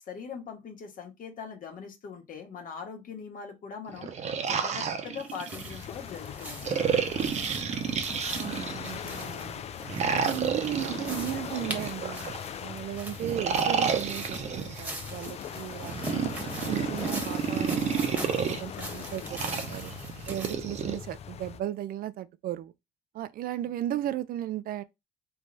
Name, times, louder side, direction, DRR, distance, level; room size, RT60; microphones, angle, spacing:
voice 1, 0.1-4.1 4.4-6.9, left 6 dB, 55° left, 1.5 m, -41 dB
sound 1, 3.9-5.8 6.6-9.0 9.9-12.4 13.2-14.8 15.8-18.6 19.3-21.0, right 6 dB, 40° right, 0.8 m, -30 dB
sound 2, 5.2-20.5, right 1 dB, 10° right, 1.3 m, -42 dB
sound 3, 5.5-21.6, left 8 dB, 40° left, 0.4 m, -41 dB
voice 2, 8.4-9.6 10.1-12.2 12.6-16.2 16.7-19.9 20.3-22.7 23.1-24.8, right 12 dB, 60° right, 0.4 m, -35 dB
3.4 x 3.3 x 4.0 m
cardioid pair, 110°, 17 cm